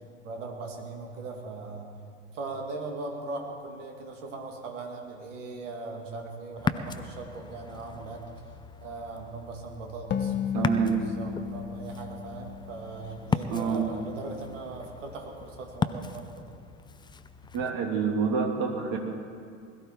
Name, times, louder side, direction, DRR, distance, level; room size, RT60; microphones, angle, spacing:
voice 1, 0.2-1.9 2.3-8.2 8.8-16.5, right 3 dB, 70° right, 1 dB, 2.6 m, -39 dB
Ocean, 6.6-17.7, left 5 dB, 10° left, 0.6 m, -37 dB
sound 1, 10.1-13.6, left 8 dB, 30° left, 1.0 m, -34 dB
voice 2, 10.5-11.0 13.5-13.8 17.5-19.0, right 6 dB, 50° right, 2 dB, 2.7 m, -27 dB
21.0 x 14.0 x 4.6 m, 2.4 s
hypercardioid pair, 80°, 39 cm